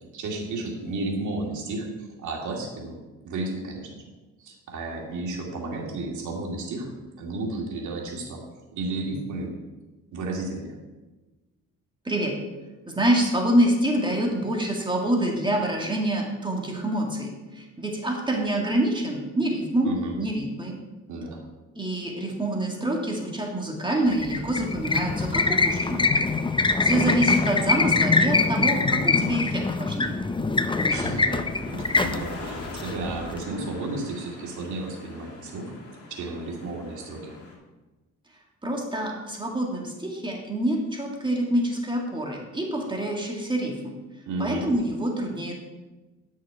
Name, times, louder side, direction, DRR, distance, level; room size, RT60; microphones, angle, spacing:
voice 1, 0.1-1.9 2.2-4.1 4.4-8.4 8.7-9.5 10.1-10.8 19.8-20.1 21.1-21.4 27.7-27.8 30.9-35.7 36.1-37.4 44.3-44.6, right 2 dB, 75° right, -1 dB, 2.5 m, -33 dB
voice 2, 12.0-12.4 12.9-20.8 21.8-26.1 26.8-30.2 38.6-43.9 44.4-45.5, right 1 dB, 15° right, 0 dB, 1.9 m, -26 dB
sound 1, 24.1-33.4, left 3 dB, 15° left, 0.6 m, -24 dB
sound 2, 30.7-37.6, left 2 dB, 50° left, 2.7 m, -42 dB
10.5 x 6.5 x 4.8 m, 1.1 s
cardioid pair, 90°, 30 cm